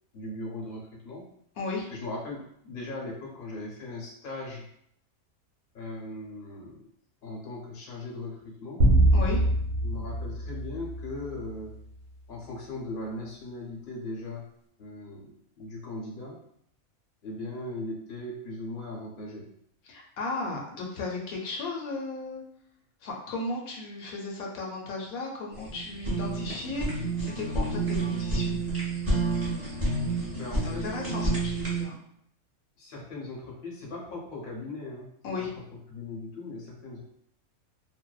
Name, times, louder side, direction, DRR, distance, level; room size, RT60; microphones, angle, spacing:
voice 1, 0.1-1.2 1.9-2.4 2.6-4.7 5.7-6.8 7.2-8.9 9.8-11.8 12.3-14.4 14.8-16.4 17.2-19.5 30.3-30.9 32.8-35.1 35.4-35.6 35.9-37.0, left 2 dB, 50° left, -3 dB, 0.7 m, -38 dB
voice 2, 1.6-1.9 9.1-9.4 19.9-22.4 23.0-28.6 30.6-32.0 35.2-35.5, left 2 dB, 80° left, -1 dB, 1.0 m, -35 dB
sound 1, 8.8-11.4, right 1 dB, 70° right, 1.0 m, -24 dB
Fire, 25.5-31.8, right 2 dB, 15° right, 0.6 m, -29 dB
2.6 x 2.1 x 2.2 m, 0.70 s
omnidirectional pair, 1.5 m